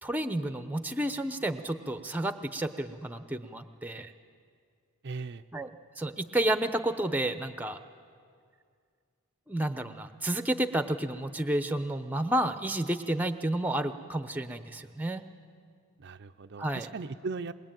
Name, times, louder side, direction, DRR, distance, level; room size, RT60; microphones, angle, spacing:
voice 1, 0.0-4.1 5.5-5.7 6.0-7.8 9.5-15.3 16.6-16.9, right 1 dB, 10° right, 9 dB, 0.7 m, -31 dB
voice 2, 5.0-5.4 16.0-17.5, right 4 dB, 50° right, 8 dB, 0.5 m, -38 dB
21.5 x 21.5 x 9.0 m, 2.2 s
head